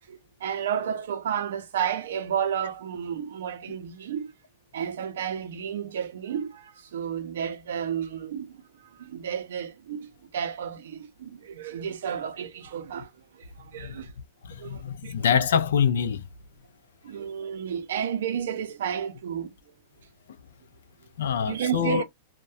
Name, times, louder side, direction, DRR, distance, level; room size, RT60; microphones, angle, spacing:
voice 1, 0.1-4.3 4.7-8.5 8.9-14.1 14.6-15.1 17.0-19.5 21.5-22.0, right 8 dB, 80° right, 0.5 m, -32 dB
voice 2, 14.4-16.2 21.2-22.0, left 7 dB, 85° left, 0.4 m, -25 dB
2.2 x 2.1 x 2.5 m
supercardioid pair, 140°, 0 cm